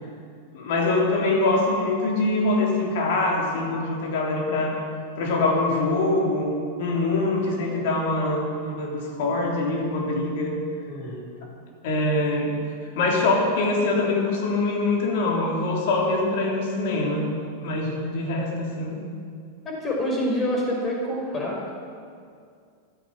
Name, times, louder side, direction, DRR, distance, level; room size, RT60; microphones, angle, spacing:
voice 1, 0.5-4.8 5.2-6.5 6.8-10.5 11.8-12.5 13.0-17.3 17.5-19.0, left 2 dB, 50° left, -1 dB, 3.5 m, -24 dB
voice 2, 10.9-11.2 17.8-18.0 19.6-21.8, left 1 dB, 25° left, -1 dB, 5.3 m, -27 dB
15.0 x 13.5 x 6.5 m, 2.2 s
figure-of-eight pair, 90°, 0 cm